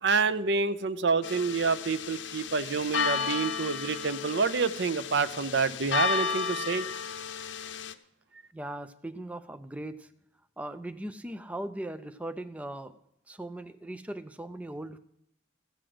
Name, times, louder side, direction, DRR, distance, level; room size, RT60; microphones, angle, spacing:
voice 1, 0.0-6.9, right 4 dB, 70° right, 14 dB, 0.6 m, -28 dB
sound 1, 1.2-7.9, left 6 dB, 80° left, 0.7 m, -33 dB
voice 2, 8.5-10.1 10.6-13.0 13.3-15.0, right 1 dB, 5° right, 10 dB, 0.4 m, -39 dB
15.5 x 6.4 x 7.7 m, 0.76 s
head